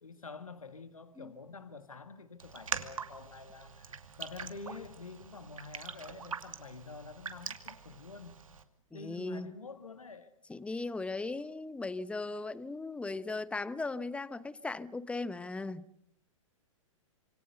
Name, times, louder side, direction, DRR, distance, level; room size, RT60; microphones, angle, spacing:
voice 1, 0.0-8.4 8.9-10.3, left 4 dB, 90° left, 1.8 m, -48 dB
Raindrop, 2.4-8.6, right 6 dB, 80° right, 2.6 m, -43 dB
voice 2, 8.9-9.5 10.5-15.8, left 3 dB, 5° left, 1.0 m, -37 dB
27.0 x 25.0 x 6.8 m
hypercardioid pair, 115°, 17 cm